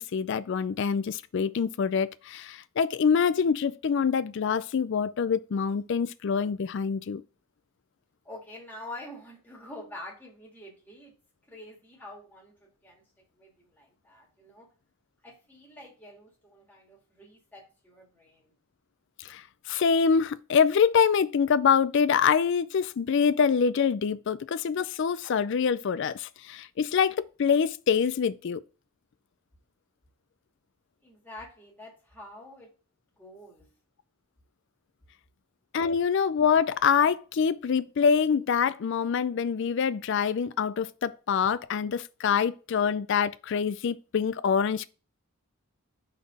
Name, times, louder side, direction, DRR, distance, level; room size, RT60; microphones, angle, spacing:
voice 1, 0.0-7.2 19.2-28.6 35.7-44.9, left 6 dB, 55° left, 0.3 m, -25 dB
voice 2, 8.2-11.1 11.5-13.0 13.3-14.7 15.2-18.5 31.0-32.7 33.2-33.7, left 1 dB, 10° left, 1.7 m, -46 dB
5.5 x 4.0 x 4.8 m
head